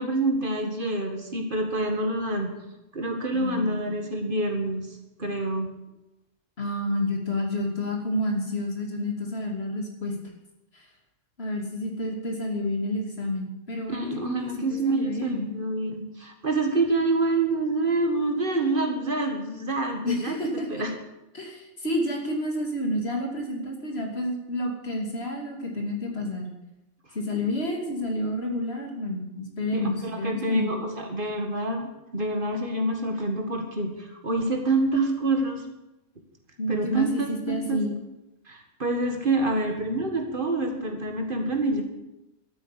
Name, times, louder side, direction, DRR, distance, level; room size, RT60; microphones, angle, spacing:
voice 1, 0.0-2.5 2.9-4.9 5.2-5.7 13.9-20.9 29.7-35.6 36.7-37.8 38.5-41.8, right 2 dB, 50° right, 3 dB, 1.9 m, -27 dB
voice 2, 3.3-3.8 6.6-10.2 10.7-10.8 11.4-14.4 14.7-15.5 20.0-20.8 21.3-26.5 27.1-30.7 36.6-37.9, left 1 dB, 65° left, 1 dB, 3.0 m, -29 dB
13.0 x 8.9 x 8.5 m, 0.93 s
omnidirectional pair, 1.2 m